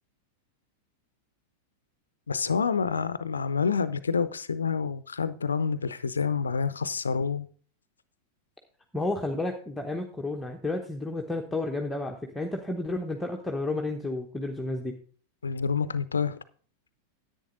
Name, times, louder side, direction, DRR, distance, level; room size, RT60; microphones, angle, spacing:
voice 1, 2.3-7.5 15.4-16.3, left 5 dB, 75° left, 0.6 m, -28 dB
voice 2, 8.9-14.9, left 2 dB, 5° left, 0.9 m, -31 dB
10.5 x 8.6 x 3.8 m
figure-of-eight pair, 90°, 0 cm